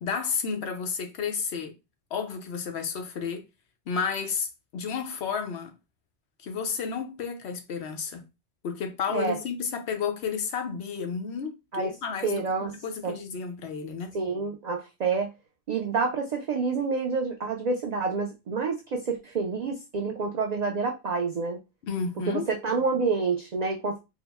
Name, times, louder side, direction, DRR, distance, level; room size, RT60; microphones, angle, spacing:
voice 1, 0.0-1.7 2.1-3.4 3.9-4.5 4.7-5.7 6.4-8.2 8.6-12.4 12.8-14.1 21.8-22.5, left 6 dB, 65° left, 0.9 m, -31 dB
voice 2, 12.2-12.7 13.0-13.2 14.1-15.3 15.7-21.6 22.3-24.0, right 4 dB, 75° right, 0.3 m, -28 dB
3.6 x 2.0 x 3.4 m
omnidirectional pair, 1.3 m